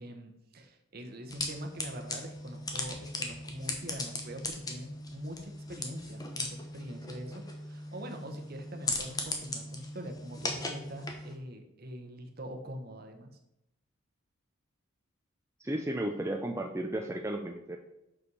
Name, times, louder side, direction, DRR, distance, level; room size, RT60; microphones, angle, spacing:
voice 1, 0.0-13.3, equal, 45° right, 5 dB, 1.0 m, -44 dB
sound 1, 1.3-11.4, left 2 dB, 20° left, 0.9 m, -38 dB
voice 2, 15.6-17.8, right 1 dB, 15° right, 3 dB, 0.5 m, -34 dB
6.2 x 5.5 x 5.5 m, 0.86 s
head